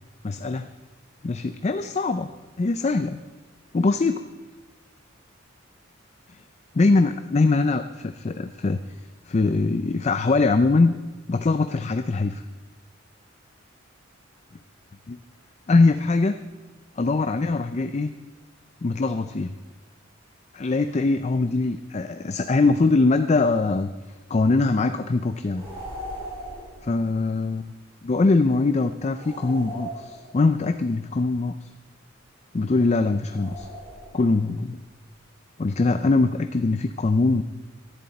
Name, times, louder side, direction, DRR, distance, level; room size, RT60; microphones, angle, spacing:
voice 1, 0.2-0.7 1.2-2.3 2.6-3.2 3.7-4.2 6.7-8.8 9.3-10.9 11.3-12.4 15.1-15.2 15.7-16.3 17.0-18.1 18.8-19.5 20.5-23.9 24.3-25.7 26.9-27.7 28.0-31.7 32.5-33.7 34.1-34.8 35.6-37.4, left 3 dB, 35° left, 10 dB, 0.4 m, -22 dB
sound 1, 25.5-26.9 29.1-30.6 33.2-34.4, equal, 20° right, 5.5 m, -38 dB
18.0 x 11.5 x 4.2 m, 1.2 s
head